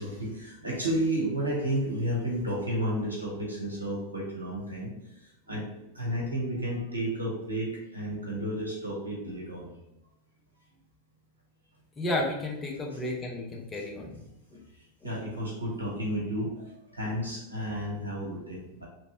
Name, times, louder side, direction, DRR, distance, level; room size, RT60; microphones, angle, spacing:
voice 1, 0.0-4.9 5.2-5.7 5.9-9.7 12.9-13.0 13.8-13.9 15.0-16.5 16.9-18.9, right 1 dB, 90° right, -4 dB, 0.9 m, -32 dB
voice 2, 12.0-14.6, left 1 dB, 20° left, 0 dB, 0.6 m, -33 dB
3.0 x 2.6 x 2.9 m, 0.89 s
figure-of-eight pair, 90°, 0 cm